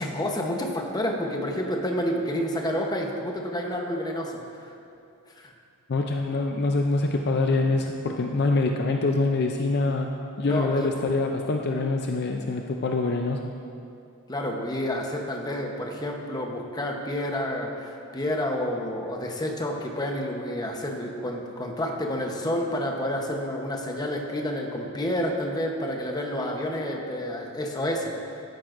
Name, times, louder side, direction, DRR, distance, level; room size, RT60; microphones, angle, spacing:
voice 1, 0.0-4.7 5.3-5.5 10.4-11.1 14.3-28.1, left 1 dB, 20° left, 1 dB, 0.9 m, -29 dB
voice 2, 5.9-10.1 10.4-13.4, left 3 dB, 50° left, 3 dB, 0.5 m, -25 dB
13.0 x 10.5 x 2.6 m, 2.6 s
head